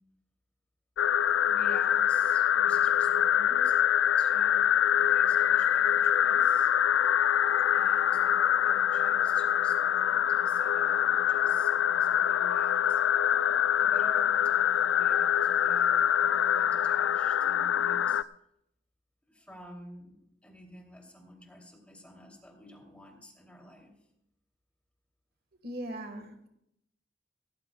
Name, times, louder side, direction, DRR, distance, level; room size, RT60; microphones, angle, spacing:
sound 1, 1.0-18.2, left 9 dB, 90° left, 0.3 m, -25 dB
voice 1, 1.4-3.8 4.2-6.7 7.7-13.0 13.8-18.2 19.3-23.9, equal, 5° left, 0 dB, 2.6 m, -51 dB
voice 2, 25.6-26.5, right 1 dB, 55° right, 6 dB, 1.4 m, -39 dB
18.0 x 18.0 x 2.2 m, 0.80 s
head